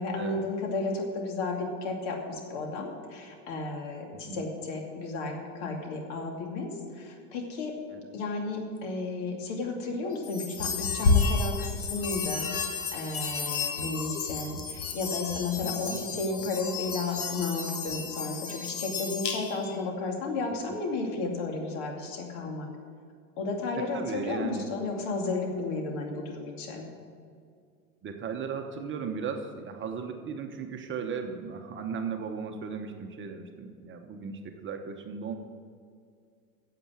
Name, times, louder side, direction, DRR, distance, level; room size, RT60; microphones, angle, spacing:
voice 1, 0.0-6.7 7.0-7.7 8.1-12.5 12.9-22.7 23.4-26.9, left 3 dB, 60° left, 1 dB, 2.7 m, -33 dB
voice 2, 4.1-4.5 7.9-8.0 15.9-16.3 23.9-24.7 28.0-35.4, right 6 dB, 30° right, 5 dB, 1.1 m, -36 dB
sound 1, 10.2-19.8, left 4 dB, 85° left, 1.8 m, -31 dB
9.2 x 7.7 x 8.7 m, 2.2 s
hypercardioid pair, 100°, 42 cm